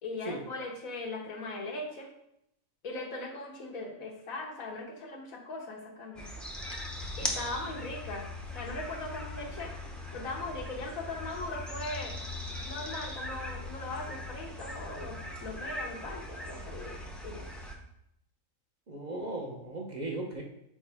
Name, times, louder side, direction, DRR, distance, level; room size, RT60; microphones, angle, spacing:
voice 1, 0.0-2.1 2.8-6.3 7.2-8.3 8.5-9.7 10.1-12.2 12.6-17.4, left 2 dB, 85° left, 1 dB, 1.5 m, -39 dB
sound 1, 6.2-17.8, left 1 dB, ahead, 0.5 m, -40 dB
voice 2, 18.9-20.4, right 2 dB, 40° right, 0 dB, 0.8 m, -37 dB
6.2 x 4.5 x 3.4 m, 0.77 s
omnidirectional pair, 1.4 m